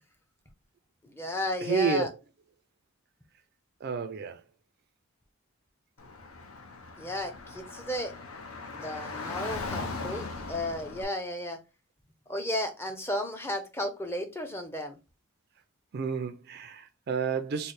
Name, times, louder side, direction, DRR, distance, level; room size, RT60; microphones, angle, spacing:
voice 1, 1.0-2.1 7.0-8.1 8.7-11.6 12.3-15.0, left 1 dB, 10° left, 0.5 m, -34 dB
voice 2, 1.6-2.1 3.8-4.4 15.9-17.7, right 5 dB, 45° right, 0.3 m, -30 dB
Car / Traffic noise roadway noise, 6.0-11.0, left 3 dB, 70° left, 0.7 m, -39 dB
3.1 x 2.1 x 4.1 m
head